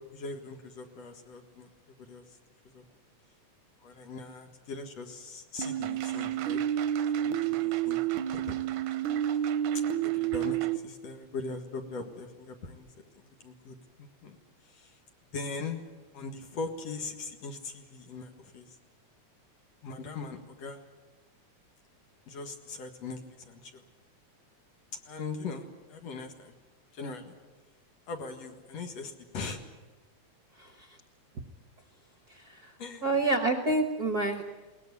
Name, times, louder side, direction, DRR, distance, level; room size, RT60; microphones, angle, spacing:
voice 1, 0.1-1.7 2.1-2.2 2.6-2.9 3.8-6.6 7.2-8.6 9.1-9.4 9.9-12.9 13.1-14.4 14.6-15.0 15.3-15.8 16.1-18.8 19.8-20.8 22.3-23.2 23.5-23.8 25.0-26.6 26.9-27.4 28.1-29.6 32.8-33.1, left 4 dB, 60° left, 5 dB, 2.9 m, -40 dB
sound 1, 5.6-10.8, right 11 dB, 85° right, 2.4 m, -29 dB
voice 2, 32.3-32.7 33.0-34.4, right 2 dB, 45° right, 6 dB, 1.3 m, -28 dB
21.5 x 19.0 x 9.8 m, 1.2 s
omnidirectional pair, 3.4 m